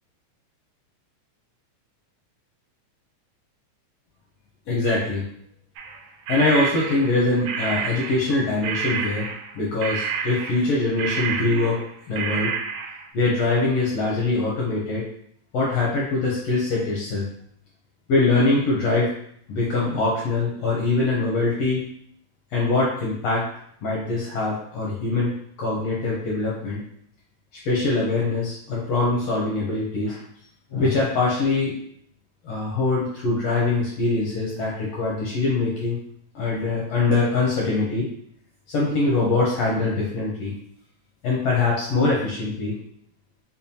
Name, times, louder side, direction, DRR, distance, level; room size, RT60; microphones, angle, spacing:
voice 1, 4.7-5.2 6.3-9.3 9.5-11.8 12.1-12.5 13.1-15.1 15.5-17.2 18.1-19.1 19.5-21.8 22.5-23.5 23.8-25.3 25.6-26.8 27.6-30.2 30.7-31.7 32.4-36.0 36.3-38.0 38.7-40.5 41.2-42.8, left 3 dB, 75° left, -4 dB, 1.4 m, -23 dB
sound 1, 5.8-8.4 8.6-11.9 12.2-13.1, right 6 dB, 85° right, 1.9 m, -29 dB
5.3 x 2.3 x 2.7 m, 0.68 s
omnidirectional pair, 3.5 m